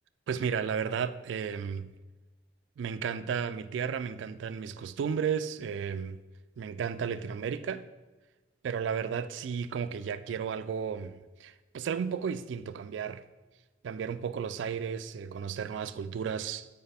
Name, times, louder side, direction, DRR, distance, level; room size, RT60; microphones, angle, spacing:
voice 1, 0.3-1.9 2.8-6.2 6.6-7.9 8.6-13.2 13.8-16.7, right 7 dB, 75° right, 0.3 m, -33 dB
8.0 x 4.3 x 3.3 m
head